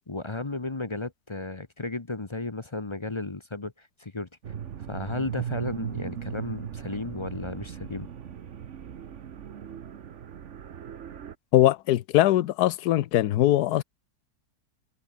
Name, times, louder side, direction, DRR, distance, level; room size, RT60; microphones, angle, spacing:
voice 1, 0.1-4.3 4.9-8.1, left 3 dB, 20° left, 0.8 m, -34 dB
sound 1, 4.4-11.4, right 8 dB, 50° right, 1.2 m, -38 dB
voice 2, 11.5-13.8, left 14 dB, 70° left, 1.2 m, -21 dB
omnidirectional pair, 1.8 m